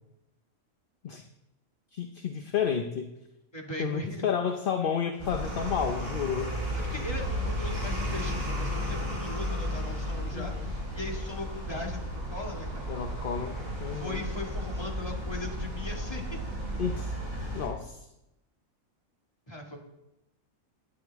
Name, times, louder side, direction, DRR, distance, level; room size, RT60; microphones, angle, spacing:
voice 1, 1.9-3.1 3.8-6.5 10.3-10.7 12.9-14.2 16.8-17.1 17.5-18.0, left 7 dB, 50° left, 5 dB, 0.8 m, -31 dB
voice 2, 3.5-4.3 6.9-12.0 12.3-12.9 13.9-16.4 19.5-19.8, left 2 dB, 20° left, 0 dB, 2.0 m, -39 dB
sound 1, 5.2-17.7, equal, 30° right, 4.2 m, -33 dB
16.5 x 9.9 x 3.5 m, 0.91 s
omnidirectional pair, 1.5 m